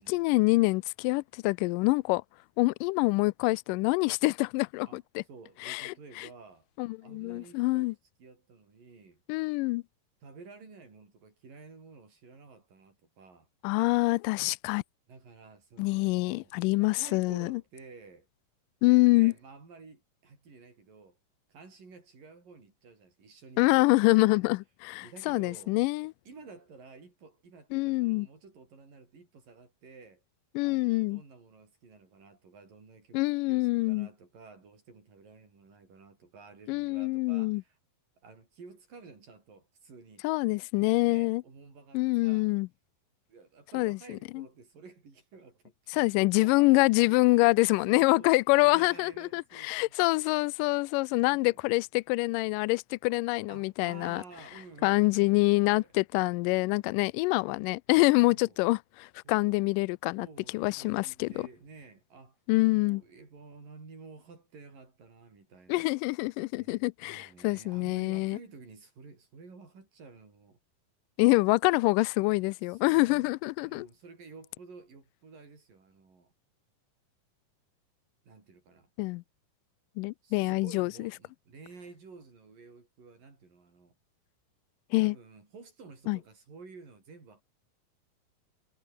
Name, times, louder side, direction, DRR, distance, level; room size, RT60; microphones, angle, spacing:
voice 1, 0.0-2.2 2.6-5.2 5.6-6.3 6.8-7.9 9.3-9.8 13.6-14.8 15.8-17.6 18.8-19.3 23.6-26.1 27.7-28.3 30.6-31.2 33.1-34.1 36.7-37.6 40.2-41.4 41.9-42.7 43.7-44.5 45.9-54.2 54.8-60.3 60.5-61.5 62.5-63.0 65.7-68.4 71.2-73.9 79.0-79.2 80.0-81.1 84.9-85.2 86.1-86.2, left 23 dB, 85° left, 1.9 m, -26 dB
voice 2, 5.3-6.7 7.0-7.9 8.2-9.2 10.2-13.5 15.1-16.5 16.8-18.3 19.1-21.2 21.5-24.0 24.3-24.4 25.0-25.8 26.3-30.2 30.6-33.2 33.5-37.8 38.2-40.3 41.0-42.5 43.3-46.8 47.0-50.2 51.3-51.7 53.5-55.9 58.3-58.6 59.3-59.6 60.2-62.4 62.8-65.9 66.5-70.6 72.7-73.4 73.6-76.3 78.2-78.9 80.2-84.0 85.0-87.4, right 4 dB, 60° right, 8.8 m, -52 dB
omnidirectional pair, 4.3 m